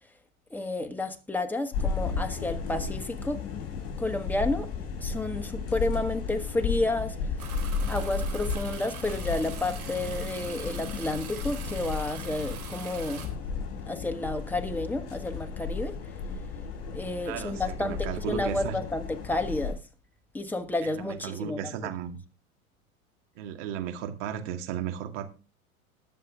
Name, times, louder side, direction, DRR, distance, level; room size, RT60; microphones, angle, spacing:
voice 1, 0.5-3.4 4.0-4.7 5.0-7.1 7.9-13.2 13.9-15.9 16.9-19.8 20.3-21.7, left 2 dB, 5° left, 5 dB, 1.5 m, -31 dB
sound 1, 1.7-19.7, left 5 dB, 35° left, 6.3 m, -34 dB
sound 2, 7.4-13.3, right 7 dB, 80° right, 4.1 m, -43 dB
voice 2, 17.2-18.8 20.8-22.2 23.4-25.3, right 10 dB, 55° right, 6 dB, 2.3 m, -35 dB
20.0 x 7.1 x 3.5 m, 0.33 s
hypercardioid pair, 100°, 42 cm